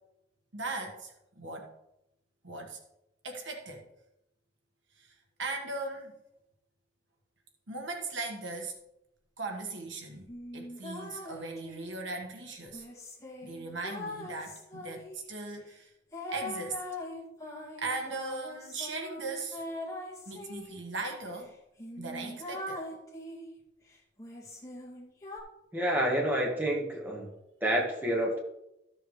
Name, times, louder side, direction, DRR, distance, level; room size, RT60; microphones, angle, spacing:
voice 1, 0.5-1.7 2.4-2.8 3.2-3.8 5.0-6.1 7.7-8.7 9.4-10.2 10.5-12.8 13.4-15.9 16.3-16.8 17.8-19.6 20.3-21.5 22.0-22.8, right 3 dB, 85° right, 2 dB, 1.4 m, -38 dB
sound 1, 10.3-12.0 12.7-15.3 16.1-20.8 21.4-21.5 21.8-23.6 24.2-25.4, left 1 dB, 20° left, 2.2 m, -42 dB
voice 2, 25.7-27.3 27.6-28.4, right 1 dB, 10° right, -1 dB, 1.5 m, -28 dB
13.5 x 7.1 x 3.1 m, 0.87 s
head